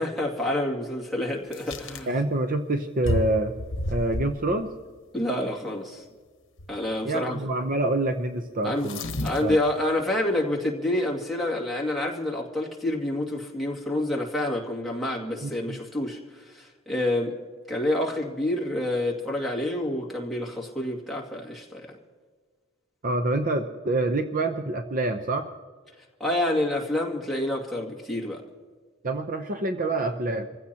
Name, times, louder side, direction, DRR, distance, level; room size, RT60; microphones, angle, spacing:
voice 1, 0.0-2.1 5.1-6.0 6.7-7.4 8.6-8.9 9.2-17.4 17.7-21.9 26.2-28.4, left 1 dB, ahead, -3 dB, 2.2 m, -28 dB
sound 1, 1.5-2.0 3.0-4.6 6.6-6.8 8.8-9.7, left 1 dB, 65° left, 1.1 m, -31 dB
voice 2, 2.1-3.5 3.9-4.7 7.0-9.0 9.4-9.6 15.4-15.8 23.0-25.5 29.0-30.5, right 2 dB, 40° right, 7 dB, 0.7 m, -26 dB
27.5 x 15.5 x 2.9 m, 1.5 s
head